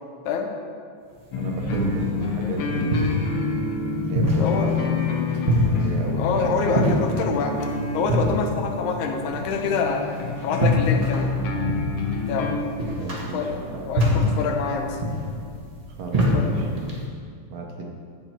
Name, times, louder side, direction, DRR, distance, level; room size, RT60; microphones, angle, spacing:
sound 1, 1.2-17.1, equal, 20° right, 1.0 m, -26 dB
sound 2, 1.3-12.5, left 4 dB, 65° left, 1.5 m, -28 dB
voice 1, 1.4-3.4 4.0-4.8 5.1-5.2 5.6-6.7 13.0-14.3 16.0-16.7 17.5-17.9, right 3 dB, 70° right, 1 dB, 2.1 m, -33 dB
voice 2, 4.3-4.7 6.1-7.6 7.9-10.1 10.4-11.3 12.3-12.5 13.3-15.0 16.3-16.8, left 5 dB, 90° left, 4 dB, 2.3 m, -26 dB
15.0 x 5.5 x 4.5 m, 2.2 s
omnidirectional pair, 3.3 m